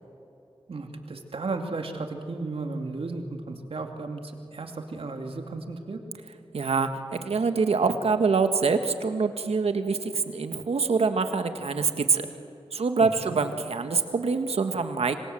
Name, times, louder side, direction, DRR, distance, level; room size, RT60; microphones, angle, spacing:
voice 1, 0.7-6.0 13.0-13.4, right 3 dB, 70° right, 4 dB, 2.5 m, -34 dB
voice 2, 6.5-12.2 12.7-15.2, right 4 dB, 85° right, 8 dB, 1.7 m, -25 dB
26.0 x 25.5 x 7.8 m, 2.8 s
wide cardioid pair, 85°, 10 cm